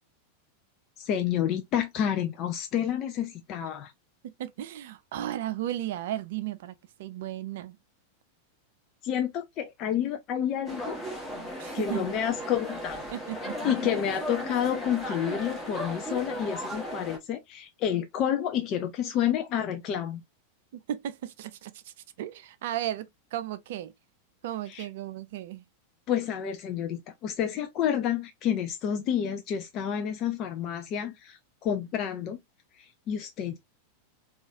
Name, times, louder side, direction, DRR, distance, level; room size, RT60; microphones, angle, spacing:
voice 1, 1.0-3.9 9.0-11.0 11.7-13.0 13.6-20.2 24.7-24.9 26.1-32.4 32.8-33.6, left 9 dB, 35° left, 0.4 m, -29 dB
voice 2, 4.2-7.8 11.6-12.2 13.1-14.2 20.7-23.9 24.4-25.6, right 12 dB, 55° right, 0.4 m, -35 dB
sound 1, 10.7-17.2, equal, 5° left, 1.5 m, -36 dB
3.8 x 2.4 x 2.7 m
figure-of-eight pair, 90°, 0 cm